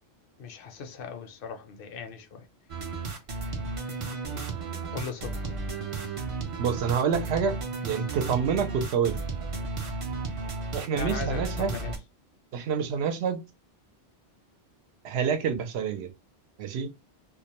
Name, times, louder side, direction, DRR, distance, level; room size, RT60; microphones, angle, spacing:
voice 1, 0.4-2.5 2.7-3.0 4.3-5.7 10.9-12.0, left 5 dB, 65° left, 0.7 m, -39 dB
sound 1, 2.7-12.0, right 3 dB, 45° right, 0.4 m, -34 dB
voice 2, 6.6-7.6 7.8-9.2 10.7-11.7 12.5-13.4 15.0-16.1 16.6-16.9, right 6 dB, 85° right, 0.8 m, -27 dB
2.3 x 2.1 x 2.8 m
omnidirectional pair, 1.1 m